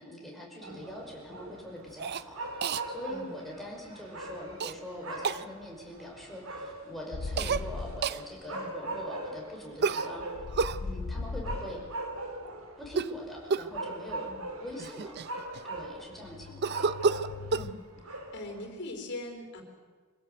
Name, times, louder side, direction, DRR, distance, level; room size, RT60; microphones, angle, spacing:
voice 1, 0.0-10.2 10.8-11.8 12.8-14.3 14.6-15.1 15.6-16.9, equal, ahead, -2 dB, 5.3 m, -43 dB
sound 1, 0.6-18.7, right 2 dB, 75° right, 2.9 m, -41 dB
Cough, 2.0-2.2 2.6-2.8 4.6-4.7 5.2-5.4 7.4-7.6 8.0-8.2 9.8-10.8 12.8-13.2 13.5-13.8 14.5-14.6 14.8-15.8 16.6-17.7, right 5 dB, 50° right, 0.6 m, -30 dB
voice 2, 3.1-3.4 8.5-8.7 10.8-11.0 14.2-14.4 17.5-17.8 18.1-19.6, left 2 dB, 55° left, 4 dB, 4.3 m, -42 dB
sound 2, 7.1-8.1 10.3-11.9 16.1-17.7, left 3 dB, 85° left, 0.6 m, -38 dB
25.5 x 16.5 x 8.0 m, 1.5 s
head